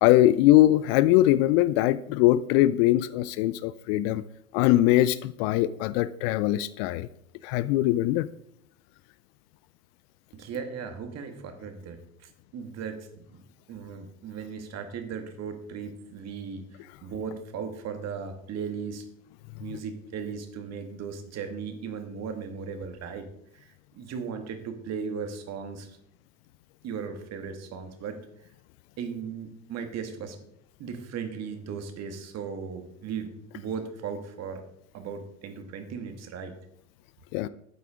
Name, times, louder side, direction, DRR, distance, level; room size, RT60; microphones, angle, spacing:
voice 1, 0.0-4.2 4.5-7.1 7.4-8.3 37.3-37.5, left 15 dB, 45° left, 16 dB, 0.5 m, -21 dB
voice 2, 10.3-13.4 13.7-16.6 17.0-19.0 19.6-23.3 23.5-26.0 26.8-28.2 29.0-30.4 30.8-34.6 34.9-36.5, right 6 dB, 40° right, 7 dB, 2.0 m, -37 dB
12.5 x 9.0 x 3.7 m, 0.75 s
figure-of-eight pair, 80°, 41 cm